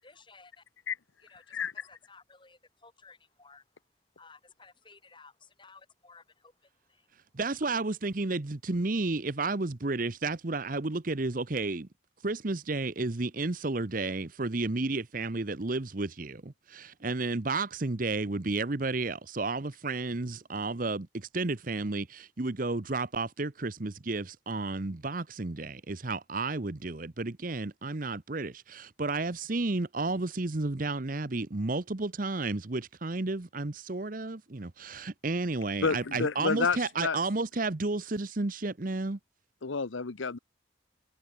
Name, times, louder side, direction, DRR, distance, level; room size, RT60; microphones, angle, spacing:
voice 1, 0.0-0.6 1.2-3.7 4.2-7.1, left 4 dB, 25° left, 7.5 m, -56 dB
voice 2, 7.3-11.9 12.2-39.2, right 3 dB, 45° right, 0.9 m, -32 dB
voice 3, 35.8-37.2 39.6-40.4, left 5 dB, 85° left, 0.9 m, -29 dB
head